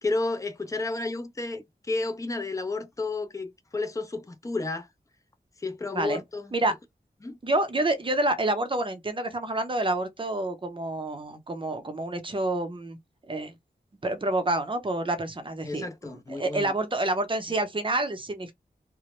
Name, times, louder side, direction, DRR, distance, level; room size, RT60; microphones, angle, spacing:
voice 1, 0.0-4.9 5.6-6.5 7.2-7.4 15.6-16.7, left 3 dB, 20° left, 0.4 m, -31 dB
voice 2, 7.4-13.0 13.3-13.5 14.0-18.5, right 2 dB, 30° right, 0.6 m, -28 dB
2.1 x 2.0 x 2.9 m
cardioid pair, 45°, 18 cm